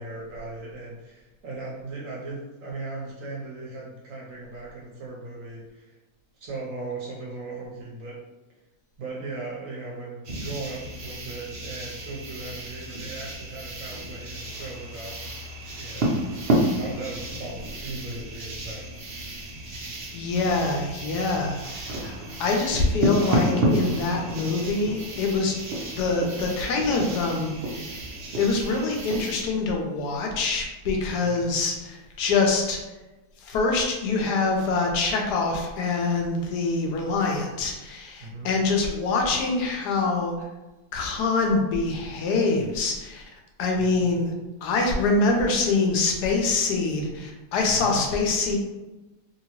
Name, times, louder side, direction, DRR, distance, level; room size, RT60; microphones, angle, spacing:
voice 1, 0.0-6.0 6.4-8.2 9.0-15.2 15.7-18.9 31.2-31.5 38.2-38.5 43.8-44.1 47.7-48.0, right 3 dB, 65° right, -3 dB, 0.9 m, -38 dB
sound 1, 10.2-29.4, right 1 dB, 80° right, 0.5 m, -31 dB
voice 2, 19.7-22.1 22.4-25.6 25.9-27.8 28.4-32.8 33.4-40.3 40.9-43.2 43.6-44.3 44.6-48.6, left 3 dB, 75° left, 1 dB, 1.1 m, -25 dB
2.9 x 2.8 x 2.9 m, 1.1 s
omnidirectional pair, 1.8 m